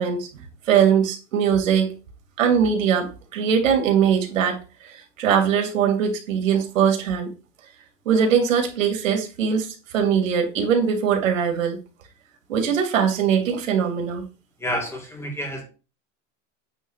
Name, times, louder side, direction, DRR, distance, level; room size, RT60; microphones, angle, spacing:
voice 1, 0.0-1.9 2.4-7.3 8.0-11.8 12.5-14.2, right 7 dB, 90° right, 3.0 m, -21 dB
voice 2, 14.6-15.6, equal, 5° left, 2.1 m, -29 dB
9.0 x 3.7 x 6.6 m
supercardioid pair, 150°, 38 cm